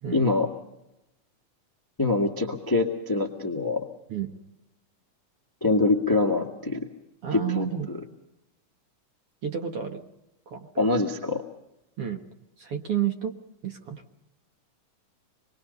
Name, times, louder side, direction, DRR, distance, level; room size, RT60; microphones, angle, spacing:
voice 1, 0.1-0.5 2.0-3.9 5.6-6.9 7.3-7.7 10.8-11.4, left 2 dB, 10° left, 3 dB, 1.0 m, -24 dB
voice 2, 7.2-7.9 9.4-10.0 10.5-10.7 12.0-12.2 12.6-13.3 13.6-14.0, right 9 dB, 55° right, 4 dB, 2.0 m, -30 dB
27.0 x 22.0 x 5.4 m, 0.91 s
omnidirectional pair, 3.8 m